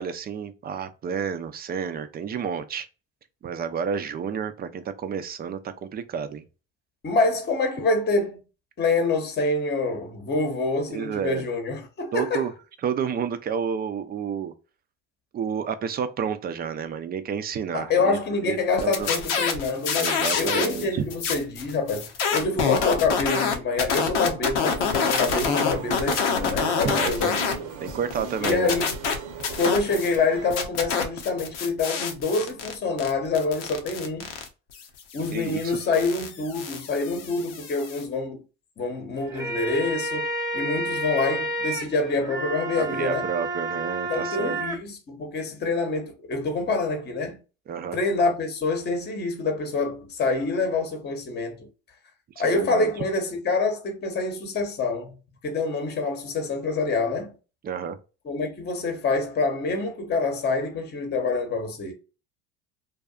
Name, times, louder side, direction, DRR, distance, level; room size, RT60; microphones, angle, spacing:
voice 1, 0.0-2.9 3.4-6.4 10.9-11.4 12.1-12.5 12.8-14.5 15.3-19.1 19.9-21.1 26.8-27.3 27.8-28.8 35.3-35.8 42.8-44.6 47.7-48.0 52.4-52.9 57.6-58.0, right 7 dB, 30° right, 0.4 m, -30 dB
voice 2, 7.0-8.4 8.8-12.5 17.7-27.4 28.4-29.0 29.6-34.3 35.1-38.4 38.8-43.3 44.1-47.4 47.9-51.7 52.4-55.2 55.4-57.3 58.2-61.9, left 3 dB, 30° left, 0.9 m, -26 dB
sound 1, 18.8-20.8 21.1-27.5 27.9-30.2 30.5-38.0, left 6 dB, 85° left, 0.8 m, -27 dB
sound 2, 24.6-30.5, right 6 dB, 60° right, 0.8 m, -38 dB
sound 3, 39.2-44.8, right 1 dB, 10° right, 0.8 m, -30 dB
2.6 x 2.3 x 2.3 m
hypercardioid pair, 85°, 34 cm